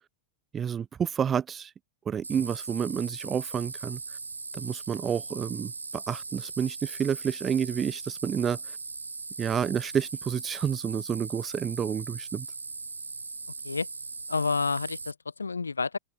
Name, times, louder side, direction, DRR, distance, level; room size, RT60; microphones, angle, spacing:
voice 1, 0.5-1.7 2.1-4.0 4.5-8.8 9.4-12.5, right 8 dB, 20° right, 0.6 m, -29 dB
sound 1, 2.2-15.1, right 4 dB, 80° right, 0.4 m, -39 dB
voice 2, 14.3-16.0, left 4 dB, 75° left, 0.3 m, -29 dB
figure-of-eight pair, 90°, 0 cm